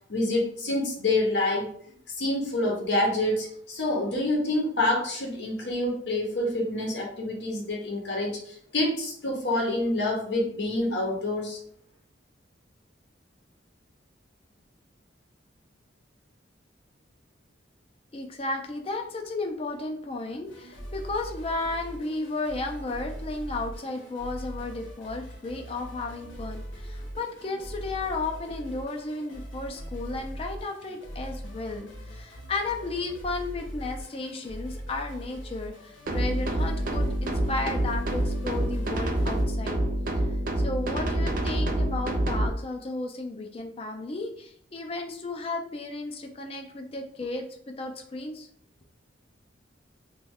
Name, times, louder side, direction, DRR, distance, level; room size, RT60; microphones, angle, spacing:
voice 1, 0.1-1.7 2.1-11.6, left 1 dB, 65° left, -1 dB, 0.7 m, -27 dB
voice 2, 18.1-39.8 40.6-48.5, left 3 dB, 30° left, 4 dB, 0.4 m, -34 dB
sound 1, 20.4-39.4, equal, 85° left, 0.9 m, -41 dB
sound 2, 36.1-42.5, right 1 dB, 45° right, 0.4 m, -27 dB
3.1 x 2.2 x 3.5 m, 0.64 s
head